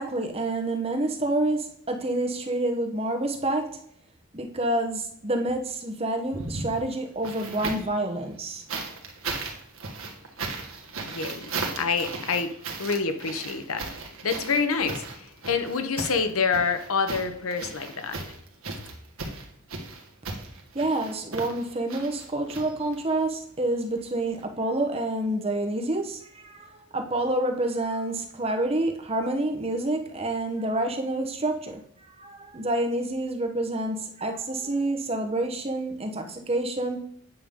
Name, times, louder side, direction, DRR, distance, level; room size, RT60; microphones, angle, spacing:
voice 1, 0.0-3.7 4.3-8.6 20.7-37.0, right 1 dB, 25° right, 4 dB, 1.0 m, -28 dB
sound 1, 6.2-8.0 8.7-23.2 24.3-24.4, right 3 dB, 75° right, 1.6 m, -36 dB
voice 2, 11.0-18.2, left 5 dB, 80° left, 8 dB, 0.9 m, -27 dB
9.1 x 6.8 x 3.7 m, 0.69 s
head